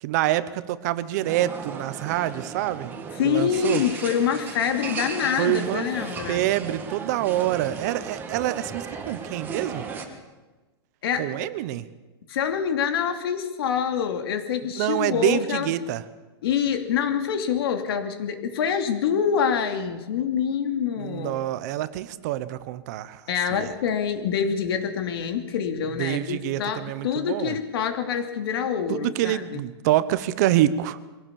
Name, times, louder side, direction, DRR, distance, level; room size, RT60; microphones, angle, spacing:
voice 1, 0.0-2.9 3.2-3.8 5.4-5.8 6.3-9.8 11.2-11.8 14.8-16.0 21.0-23.2 23.5-23.7 26.0-27.5 28.9-31.0, right 14 dB, 40° right, 14 dB, 1.0 m, -26 dB
sound 1, 1.2-10.0, right 5 dB, 15° right, 1.8 m, -36 dB
voice 2, 3.2-6.4 11.0-11.5 12.3-15.7 16.4-21.4 23.3-29.6, left 7 dB, 65° left, 7 dB, 2.6 m, -26 dB
23.0 x 17.0 x 7.1 m, 1.2 s
supercardioid pair, 170°, 13 cm